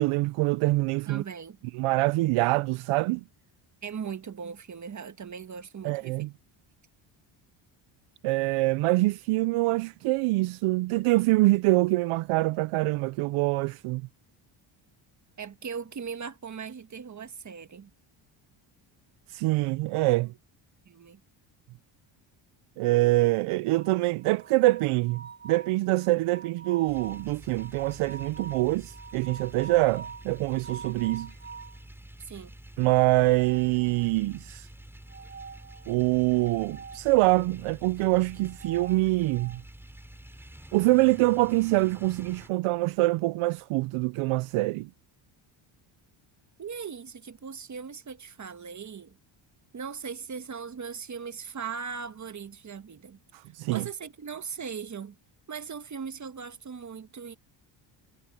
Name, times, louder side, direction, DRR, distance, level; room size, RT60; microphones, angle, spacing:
voice 1, 0.0-1.2 1.7-3.2 5.8-6.3 8.2-14.0 19.3-20.3 22.8-31.3 32.8-34.7 35.9-39.6 40.7-44.9 53.3-53.9, right 20 dB, 85° right, 0.6 m, -25 dB
voice 2, 1.1-1.6 3.8-6.3 15.4-17.9 20.8-21.2 32.2-32.5 46.6-49.2 49.7-53.2 53.7-55.1 55.5-57.4, right 6 dB, 35° right, 1.5 m, -39 dB
sound 1, 23.7-31.8 33.1-34.3 35.1-37.1 38.3-39.6, right 5 dB, 20° right, 0.7 m, -46 dB
sound 2, 26.9-42.5, right 1 dB, 5° right, 4.0 m, -48 dB
cardioid pair, 95°, 49 cm